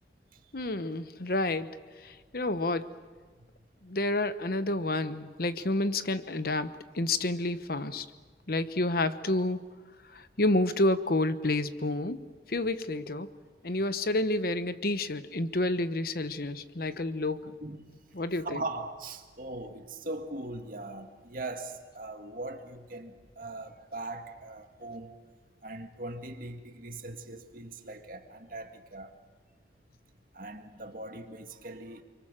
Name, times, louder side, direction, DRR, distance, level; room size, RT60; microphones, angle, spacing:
voice 1, 0.5-1.7 2.0-2.9 3.8-8.1 8.5-9.6 10.1-12.2 12.5-13.3 13.6-17.5 18.1-18.6, left 2 dB, 55° left, 1.1 m, -29 dB
voice 2, 18.4-25.1 25.6-29.1 30.3-32.0, right 2 dB, 50° right, 2.1 m, -40 dB
29.5 x 23.5 x 7.6 m
head